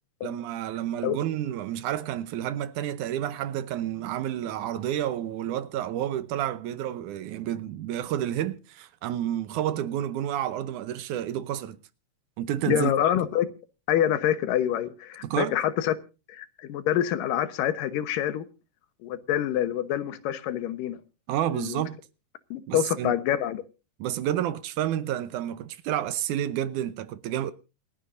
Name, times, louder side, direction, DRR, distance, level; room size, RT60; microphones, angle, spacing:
voice 1, 0.2-11.8 12.4-12.9 15.2-15.6 21.3-22.0 22.7-23.2 24.0-27.5, right 11 dB, 75° right, 2.2 m, -30 dB
voice 2, 12.7-13.5 13.9-15.9 16.3-18.5 19.0-21.0 21.5-21.8 22.5-23.6, left 11 dB, 90° left, 2.7 m, -26 dB
27.5 x 9.8 x 2.6 m
omnidirectional pair, 3.8 m